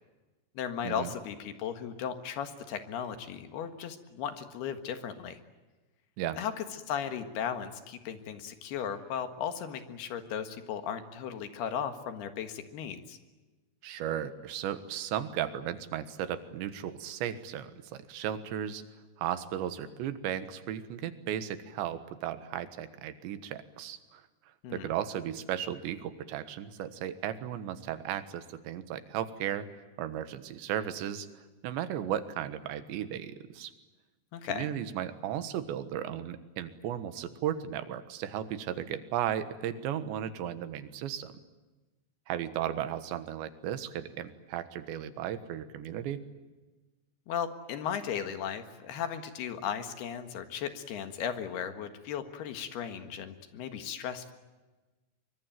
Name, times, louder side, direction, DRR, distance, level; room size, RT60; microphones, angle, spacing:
voice 1, 0.6-5.4 6.4-13.2 24.6-24.9 34.3-34.7 47.3-54.3, left 8 dB, 70° left, 8 dB, 3.4 m, -36 dB
voice 2, 13.8-18.8 19.2-24.2 24.7-29.7 30.0-31.3 31.6-33.7 34.5-41.3 42.3-46.2, right 10 dB, 85° right, 11 dB, 3.7 m, -35 dB
24.0 x 23.5 x 9.2 m, 1.2 s
omnidirectional pair, 5.0 m